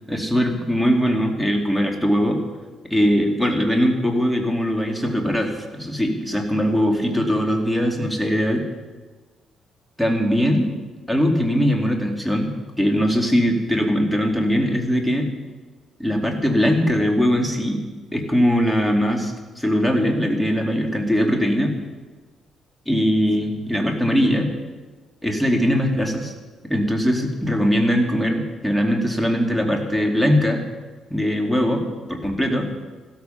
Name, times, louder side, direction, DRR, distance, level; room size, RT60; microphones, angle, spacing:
voice 1, 0.1-2.4 2.9-8.6 10.0-10.7 11.1-12.5 12.8-15.3 16.0-17.8 18.1-21.7 22.9-24.5 25.2-26.3 26.7-30.6 31.1-32.7, equal, 5° left, 2 dB, 2.7 m, -21 dB
16.0 x 13.0 x 5.8 m, 1.3 s
cardioid pair, 90°, 0 cm